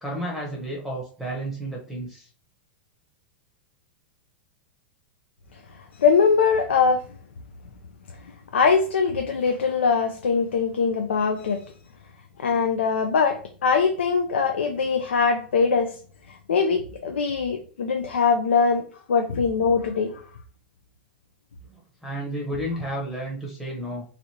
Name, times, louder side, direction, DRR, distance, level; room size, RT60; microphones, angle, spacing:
voice 1, 0.0-2.3 21.7-24.0, right 1 dB, ahead, 0.8 m, -32 dB
voice 2, 6.0-7.0 8.5-11.6 12.4-16.0 16.3-20.2, left 5 dB, 85° left, 0.4 m, -22 dB
3.0 x 2.6 x 2.7 m
hypercardioid pair, 105°, 6 cm